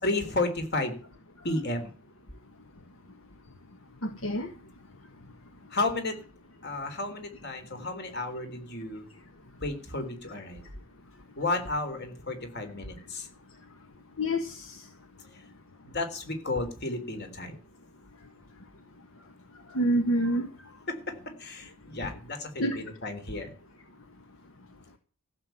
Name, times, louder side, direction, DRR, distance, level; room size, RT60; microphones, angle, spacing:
voice 1, 0.0-1.0 1.4-1.9 5.7-6.2 6.6-9.1 9.6-10.6 11.4-13.3 15.3-15.4 15.8-17.6 20.9-23.5, left 2 dB, 45° left, 7 dB, 3.6 m, -32 dB
voice 2, 4.0-4.5 14.2-14.8 19.7-20.5 22.6-22.8, equal, 65° left, 7 dB, 1.5 m, -27 dB
15.0 x 7.6 x 9.2 m, 0.37 s
head